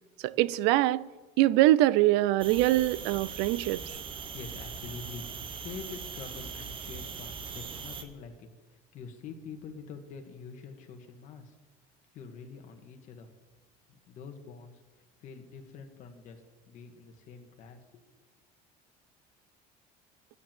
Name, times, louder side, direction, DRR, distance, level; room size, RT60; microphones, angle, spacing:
voice 1, 0.2-1.1 1.4-4.0, right 16 dB, 80° right, 0.5 m, -24 dB
sound 1, 2.4-8.0, right 6 dB, 30° right, 1.2 m, -40 dB
voice 2, 4.3-5.2 5.5-11.5 12.1-13.3 13.9-14.8 15.2-18.0, left 5 dB, 45° left, 1.8 m, -46 dB
11.5 x 9.8 x 7.7 m
cardioid pair, 160°, 17 cm